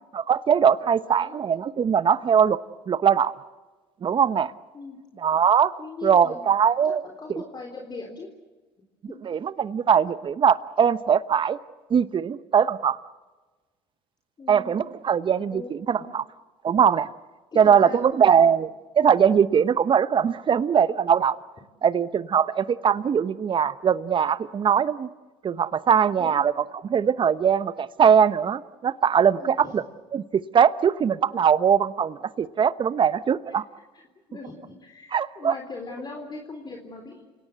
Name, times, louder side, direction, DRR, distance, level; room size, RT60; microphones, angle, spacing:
voice 1, 0.1-2.6 2.9-3.3 4.0-4.5 5.2-5.7 6.0-7.0 9.3-11.6 11.9-13.0 14.5-16.2 16.6-17.1 17.6-18.7 19.0-21.4 21.8-25.1 25.4-26.5 26.9-29.8 30.1-33.6 35.1-35.5, right 7 dB, 40° right, 15 dB, 1.0 m, -21 dB
voice 2, 0.8-1.4 4.7-5.0 5.8-6.5 6.8-8.3 9.1-9.2 14.4-14.9 15.5-16.1 17.5-18.5 26.2-26.4 29.4-29.9 33.9-34.0 34.3-37.3, left 3 dB, 30° left, 2 dB, 3.8 m, -40 dB
29.5 x 18.0 x 8.2 m, 1.3 s
hypercardioid pair, 70°, 14 cm